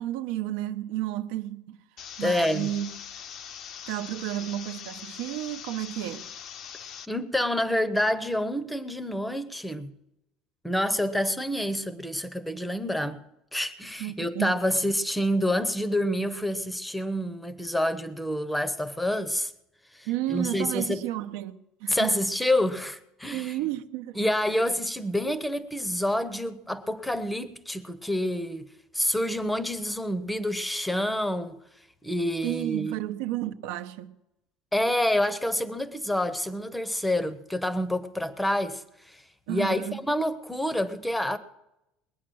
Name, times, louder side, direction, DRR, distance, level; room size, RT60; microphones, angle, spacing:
voice 1, 0.0-1.8 2.2-2.9 3.9-6.3 14.0-14.5 20.1-22.2 23.3-24.2 32.4-34.1 39.5-40.0, right 14 dB, 75° right, 0.8 m, -32 dB
sound 1, 2.0-7.0, left 8 dB, 40° left, 0.5 m, -42 dB
voice 2, 2.2-2.7 7.1-9.9 10.6-13.2 13.5-19.5 19.9-21.1 21.9-23.6 24.2-28.7 28.9-31.6 32.0-33.0 34.7-39.2 39.5-41.4, left 1 dB, 5° left, 0.7 m, -28 dB
20.5 x 9.5 x 6.2 m
cardioid pair, 165°, 0 cm